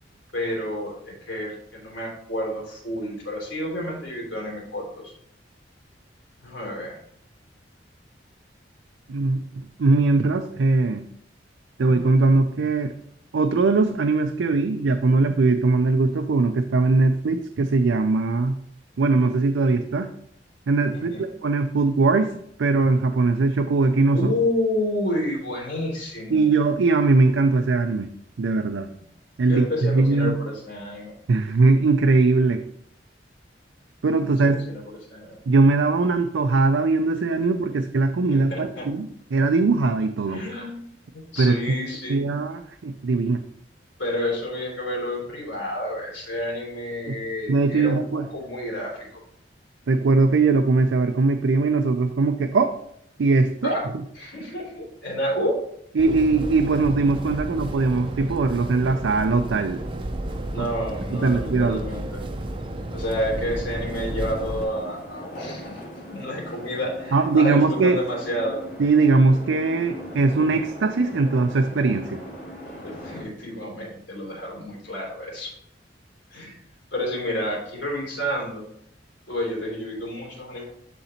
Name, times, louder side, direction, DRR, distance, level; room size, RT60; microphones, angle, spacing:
voice 1, 0.3-5.1 6.4-7.0 20.9-21.2 24.1-26.5 29.5-31.1 34.2-34.8 35.1-35.4 38.3-38.9 40.3-40.8 41.1-42.3 44.0-49.2 53.6-53.9 54.1-55.6 60.5-62.2 62.9-68.6 72.8-75.6 76.3-76.6 76.9-78.6 79.3-80.6, left 1 dB, 85° left, -3 dB, 3.0 m, -30 dB
voice 2, 9.1-11.0 11.8-12.9 13.3-18.6 19.0-20.1 20.7-24.3 26.3-28.1 28.4-28.9 29.4-30.4 31.3-32.6 34.0-34.6 35.5-40.4 41.4-41.5 42.1-43.4 47.1-47.2 47.5-48.3 49.9-52.7 53.2-53.7 56.0-59.8 60.6-60.7 61.2-61.8 67.1-68.0 68.8-72.2, right 3 dB, 90° right, 6 dB, 0.4 m, -20 dB
sound 1, 56.0-64.7, right 1 dB, 30° right, 0.6 m, -32 dB
sound 2, 62.3-73.2, equal, 40° left, 2.7 m, -40 dB
11.0 x 3.9 x 2.9 m, 0.71 s
head